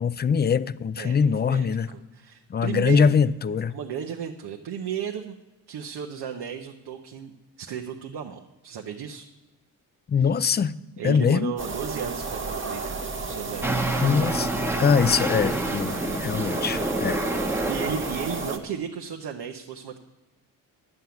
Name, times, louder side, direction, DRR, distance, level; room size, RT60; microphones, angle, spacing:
voice 1, 0.0-1.9 2.5-3.8 10.1-10.7 11.0-11.5 14.0-14.5 14.8-17.2, left 6 dB, 25° left, 0.4 m, -22 dB
voice 2, 1.0-3.2 3.7-5.4 5.7-7.3 7.6-9.3 10.2-10.3 11.0-14.4 17.7-20.0, right 7 dB, 70° right, 1.0 m, -34 dB
sound 1, 11.6-18.6, right 4 dB, 30° right, 1.3 m, -33 dB
sound 2, 13.6-18.7, right 1 dB, 5° right, 1.1 m, -28 dB
11.0 x 7.7 x 7.0 m
cardioid pair, 70°, 41 cm